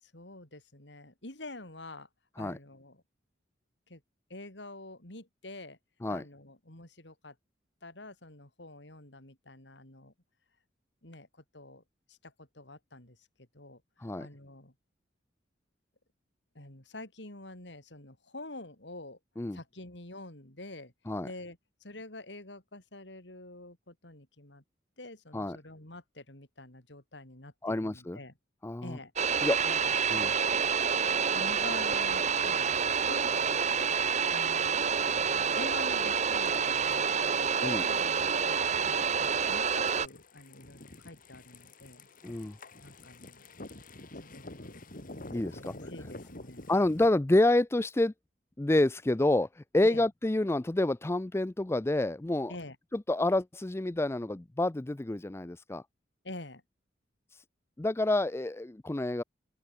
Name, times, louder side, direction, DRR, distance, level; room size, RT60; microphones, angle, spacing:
voice 1, 0.0-2.1 2.4-3.0 3.9-4.0 4.3-5.8 6.1-7.3 7.8-10.1 11.0-11.8 12.1-13.2 13.5-13.8 14.2-14.7 16.5-19.2 19.5-20.9 21.2-24.6 25.0-28.3 28.8-30.1 31.3-33.3 34.3-42.1 42.8-43.5 44.2-44.8 45.5-46.7 49.8-50.1 52.5-52.8 56.2-56.6, left 2 dB, 70° left, 5.1 m, -47 dB
voice 2, 27.6-28.2 28.6-29.0 29.4-29.6 30.1-30.3 37.6-37.8 42.2-42.6 45.3-45.7 46.7-48.1 48.6-52.5 52.9-55.8 57.8-59.2, left 2 dB, 15° left, 0.5 m, -28 dB
sound 1, 29.2-40.1, right 6 dB, 40° right, 1.1 m, -28 dB
sound 2, 36.2-47.1, left 2 dB, 50° left, 3.0 m, -49 dB
open air
head